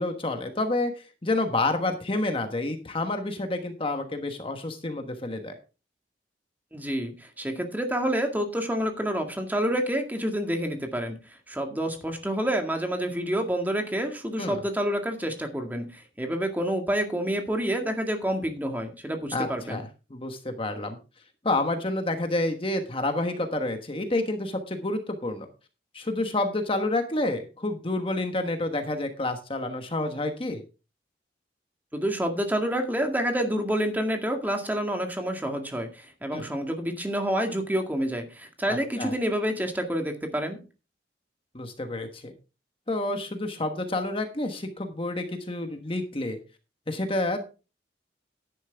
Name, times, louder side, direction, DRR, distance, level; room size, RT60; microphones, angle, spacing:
voice 1, 0.0-5.5 14.4-14.6 19.3-19.8 20.1-21.0 21.4-25.5 25.9-30.6 36.3-36.5 38.7-39.1 41.5-42.3 42.9-46.4 46.9-47.4, left 2 dB, 30° left, 6 dB, 1.2 m, -29 dB
voice 2, 6.7-19.8 31.9-40.6, equal, 10° right, 4 dB, 2.0 m, -28 dB
11.5 x 10.5 x 3.4 m, 0.32 s
head